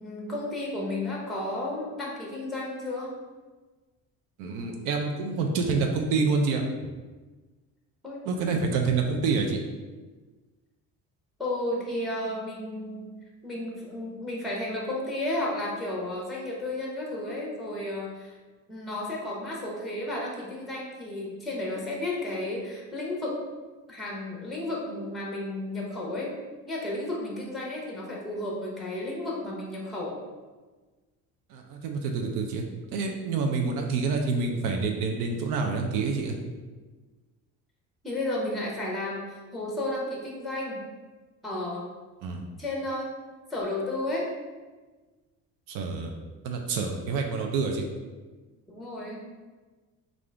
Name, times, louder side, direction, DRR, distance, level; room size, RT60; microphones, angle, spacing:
voice 1, 0.0-3.1 8.0-8.2 11.4-13.1 13.4-18.4 18.7-23.4 23.9-26.3 26.6-30.2 38.0-40.8 41.4-41.9 42.6-43.1 43.5-44.3 48.7-49.2, left 1 dB, ahead, -3 dB, 0.6 m, -33 dB
voice 2, 4.4-6.6 8.3-9.6 31.5-32.6 32.9-36.4 42.2-42.4 45.7-46.1 46.4-47.8, right 4 dB, 90° right, 2 dB, 0.5 m, -27 dB
3.6 x 2.5 x 3.3 m, 1.3 s
cardioid pair, 135°, 30 cm